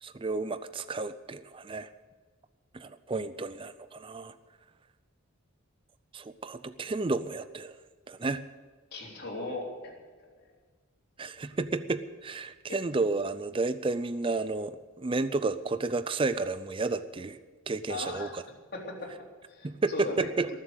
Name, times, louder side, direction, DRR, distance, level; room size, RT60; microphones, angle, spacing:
voice 1, 0.0-1.9 2.7-4.3 6.1-7.8 8.1-8.4 11.2-17.4 17.7-18.4 19.6-20.5, right 3 dB, 25° right, 13 dB, 0.4 m, -31 dB
voice 2, 8.9-9.9 17.9-18.4 18.7-20.6, left 2 dB, 50° left, -2 dB, 3.6 m, -38 dB
19.5 x 7.6 x 8.1 m, 1.4 s
head